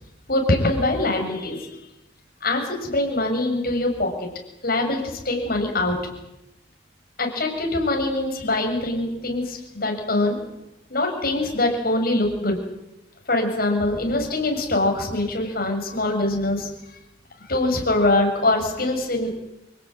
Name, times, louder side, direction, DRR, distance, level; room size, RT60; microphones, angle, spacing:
voice 1, 0.3-1.7 2.4-4.3 4.6-6.0 7.2-10.4 10.9-12.6 13.3-16.7 17.4-19.4, left 2 dB, 55° left, 2 dB, 7.5 m, -23 dB
28.0 x 17.5 x 9.6 m, 0.93 s
head